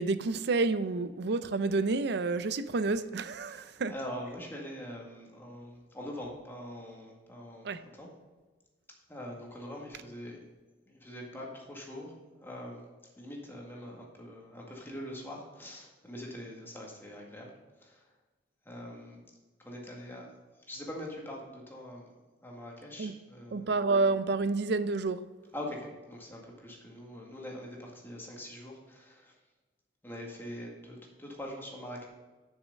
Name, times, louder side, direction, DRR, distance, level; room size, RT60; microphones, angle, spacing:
voice 1, 0.0-3.9 7.6-7.8 23.0-23.1 23.5-25.3, right 3 dB, 65° right, 0.5 m, -29 dB
voice 2, 3.5-8.1 9.1-10.4 10.9-12.9 13.2-17.5 17.8-18.1 18.6-19.2 19.6-20.3 20.7-23.7 25.5-29.3 30.0-32.1, left 1 dB, 10° left, 1.9 m, -43 dB
7.2 x 6.5 x 6.4 m
head